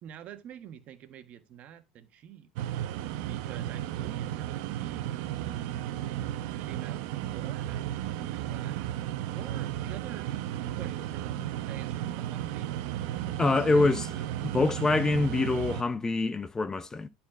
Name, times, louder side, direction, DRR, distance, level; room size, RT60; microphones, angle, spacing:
voice 1, 0.0-2.5 3.1-5.1 6.6-10.3 10.7-12.8 13.2-14.1, right 10 dB, 50° right, 1.5 m, -47 dB
sound 1, 2.6-15.8, right 12 dB, 70° right, 0.8 m, -34 dB
voice 2, 13.4-14.1 14.4-17.1, left 3 dB, 20° left, 0.6 m, -25 dB
11.5 x 4.3 x 4.2 m
supercardioid pair, 100°, 3 cm